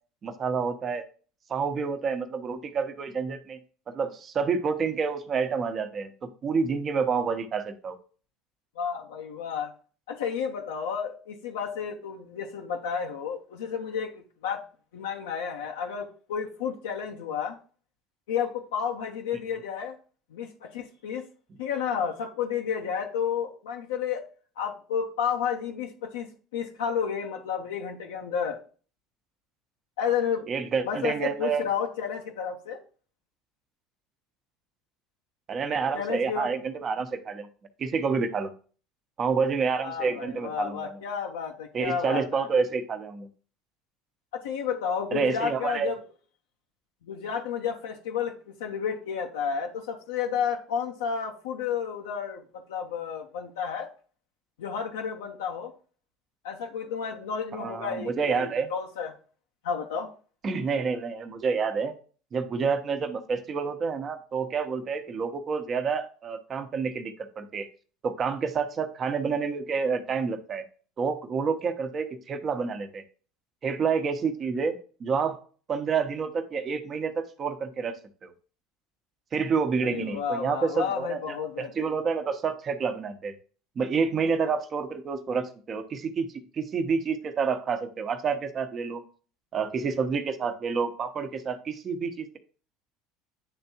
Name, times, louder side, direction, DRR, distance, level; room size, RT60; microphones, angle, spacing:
voice 1, 0.2-1.0 1.5-3.6 3.9-8.0 30.5-31.7 35.5-37.5 37.8-38.5 39.2-41.0 41.7-43.3 45.1-45.9 57.5-58.7 60.4-61.9 62.3-67.7 68.0-70.6 71.0-73.0 73.6-74.7 75.0-75.4 75.7-78.0 78.2-78.3 79.3-83.3 83.8-86.3 86.5-89.0 89.5-92.4, right 5 dB, 40° right, 8 dB, 0.9 m, -28 dB
voice 2, 8.8-9.7 10.1-14.1 14.4-14.6 14.9-17.6 18.3-20.0 20.3-21.2 21.6-24.3 24.6-28.6 30.0-30.4 30.9-32.8 35.9-36.5 39.8-42.5 44.3-46.0 47.0-52.4 52.7-53.9 54.6-55.7 56.4-59.1 59.6-60.1 79.8-81.9, left 7 dB, 85° left, 1 dB, 0.7 m, -31 dB
9.8 x 3.4 x 2.8 m, 0.40 s
hypercardioid pair, 80°, 0 cm